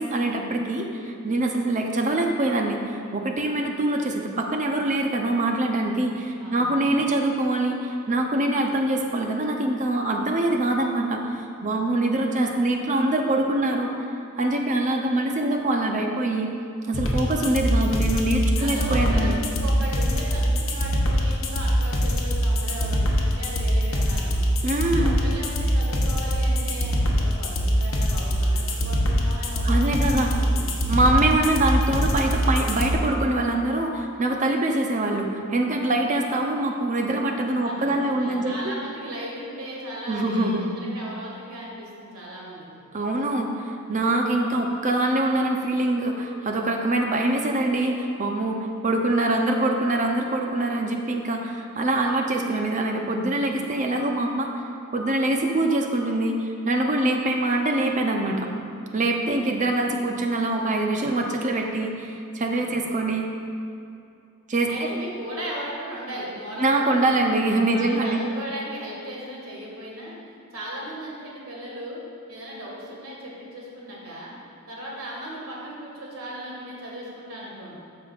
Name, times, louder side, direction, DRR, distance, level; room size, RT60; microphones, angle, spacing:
voice 1, 0.0-13.9 14.4-16.5 16.9-19.4 24.6-25.2 29.6-30.3 30.9-38.6 40.1-40.6 42.9-54.6 54.9-58.5 58.9-63.3 64.5-64.9 66.6-68.2, right 2 dB, 35° right, 2 dB, 0.6 m, -24 dB
voice 2, 6.4-7.0 18.6-24.5 24.9-30.1 30.4-30.8 37.6-42.9 62.6-62.9 64.7-67.0 67.7-70.2 70.5-72.0 72.3-74.3 74.7-77.8, equal, 75° right, -4 dB, 1.7 m, -37 dB
sound 1, 16.9-32.9, equal, 65° left, 0.9 m, -23 dB
12.5 x 5.2 x 2.4 m, 2.5 s
head